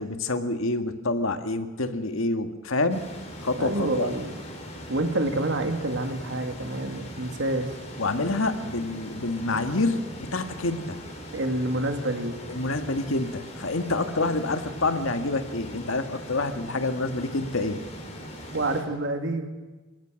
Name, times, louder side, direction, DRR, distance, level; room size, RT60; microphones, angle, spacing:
voice 1, 0.0-3.0 3.4-4.1 8.0-10.0 10.3-11.0 12.5-17.8, left 2 dB, 80° left, 7 dB, 1.8 m, -27 dB
sound 1, 2.9-18.8, equal, 35° left, 4.3 m, -40 dB
voice 2, 3.6-4.4 4.9-7.7 11.3-12.4 18.5-19.5, right 2 dB, 65° right, 5 dB, 2.5 m, -27 dB
28.0 x 17.5 x 6.5 m, 1.2 s
head